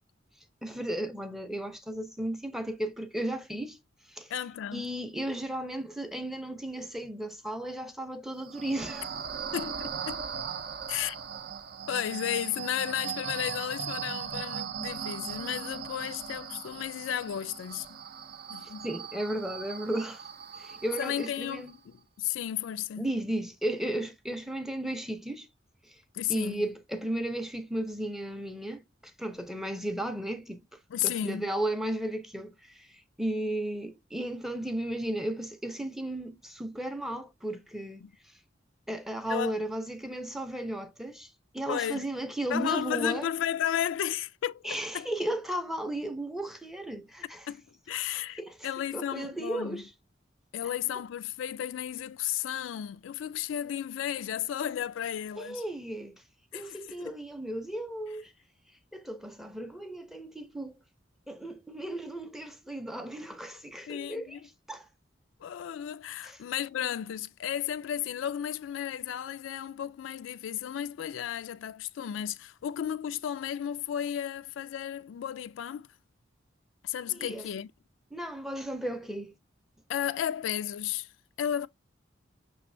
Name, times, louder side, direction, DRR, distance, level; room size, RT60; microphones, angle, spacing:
voice 1, 0.6-3.8 4.1-4.3 4.7-9.1 18.6-20.2 20.6-21.7 23.0-25.5 25.9-26.0 26.3-30.6 31.0-38.1 38.9-43.3 44.6-47.4 48.4-48.7 48.9-49.9 55.4-56.2 56.5-58.3 58.9-60.7 61.3-64.4 64.7-64.9 66.2-66.4 77.1-77.5 78.1-79.3, right 1 dB, ahead, 0.5 m, -35 dB
voice 2, 4.3-4.9 9.5-10.2 10.9-11.2 11.9-17.9 18.5-18.9 21.0-23.1 26.1-26.6 30.9-31.5 38.0-38.1 39.3-39.5 41.7-42.1 42.5-44.7 44.9-45.1 47.5-49.8 50.5-55.6 56.5-57.1 63.9-64.4 65.4-75.9 76.8-77.7 79.9-81.1 81.4-81.7, left 10 dB, 85° left, 0.3 m, -33 dB
sound 1, 8.3-21.7, right 7 dB, 55° right, 0.5 m, -39 dB
6.0 x 3.1 x 2.5 m
head